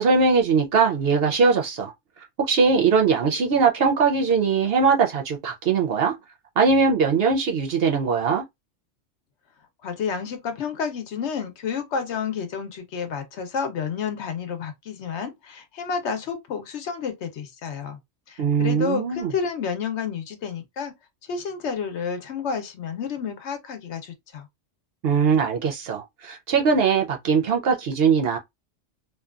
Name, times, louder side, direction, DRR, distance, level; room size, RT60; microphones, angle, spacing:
voice 1, 0.0-1.9 2.4-6.1 6.6-8.4 18.4-19.3 25.0-28.4, right 5 dB, 60° right, 0.7 m, -21 dB
voice 2, 9.8-18.0 18.3-20.9 21.3-24.5, left 6 dB, 70° left, 0.9 m, -30 dB
2.7 x 2.2 x 2.3 m
omnidirectional pair, 1.3 m